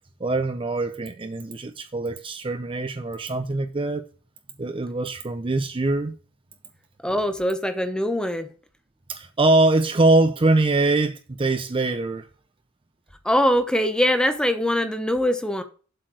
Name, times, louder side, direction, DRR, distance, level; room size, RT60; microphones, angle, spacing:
voice 1, 0.2-4.0 4.6-6.1 9.1-12.3, right 2 dB, 25° right, 0.5 m, -23 dB
voice 2, 7.0-8.5 13.2-15.6, equal, 5° left, 0.9 m, -22 dB
7.6 x 4.4 x 6.2 m
head